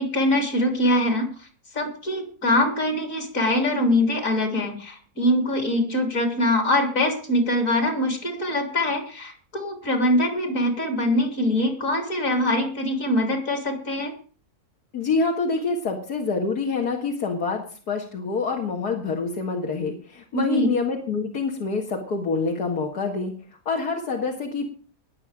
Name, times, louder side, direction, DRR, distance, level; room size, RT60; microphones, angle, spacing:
voice 1, 0.0-1.5 1.7-14.1 20.3-20.7, left 1 dB, 55° left, 4 dB, 3.9 m, -23 dB
voice 2, 14.9-23.3 23.7-24.7, left 4 dB, 80° left, 0 dB, 2.3 m, -26 dB
20.5 x 7.3 x 5.0 m, 0.41 s
omnidirectional pair, 1.7 m